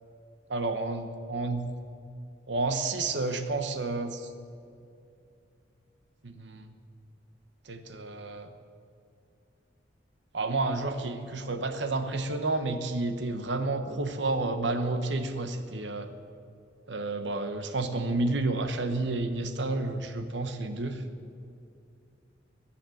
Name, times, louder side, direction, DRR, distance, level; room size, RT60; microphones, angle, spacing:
voice 1, 0.5-1.6 2.5-4.3 6.2-6.7 7.6-8.5 10.3-16.1 16.9-21.0, right 2 dB, 70° right, 8 dB, 1.1 m, -30 dB
20.5 x 7.3 x 7.8 m, 2.5 s
head